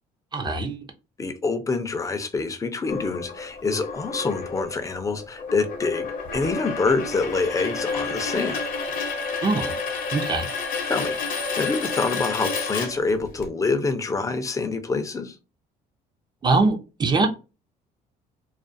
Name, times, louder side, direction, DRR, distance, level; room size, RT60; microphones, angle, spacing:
voice 1, 0.3-0.8 9.4-9.7 10.1-10.5 16.4-17.3, right 3 dB, 25° right, 0.6 m, -22 dB
voice 2, 1.2-6.1 6.3-8.6 10.9-15.4, left 4 dB, 20° left, 0.5 m, -26 dB
sound 1, 2.9-13.5, left 4 dB, 55° left, 0.7 m, -30 dB
2.4 x 2.4 x 2.5 m
cardioid pair, 110°, 17 cm